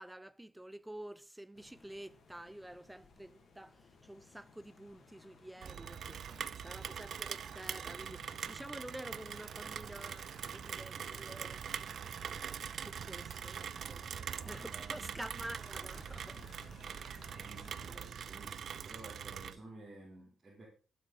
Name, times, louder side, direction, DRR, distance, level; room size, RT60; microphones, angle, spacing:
voice 1, 0.0-11.7 12.7-14.1 14.5-16.4, right 1 dB, 10° right, 0.6 m, -49 dB
sound 1, 1.5-18.1, left 4 dB, 50° left, 3.0 m, -60 dB
Rain, 5.6-19.5, right 8 dB, 60° right, 0.8 m, -43 dB
sound 2, 5.7-14.2, right 5 dB, 80° right, 3.3 m, -65 dB
voice 2, 6.1-6.5 14.1-15.1 16.1-16.6 16.8-20.7, right 2 dB, 30° right, 5.0 m, -54 dB
17.0 x 8.1 x 3.8 m
cardioid pair, 80°, 0 cm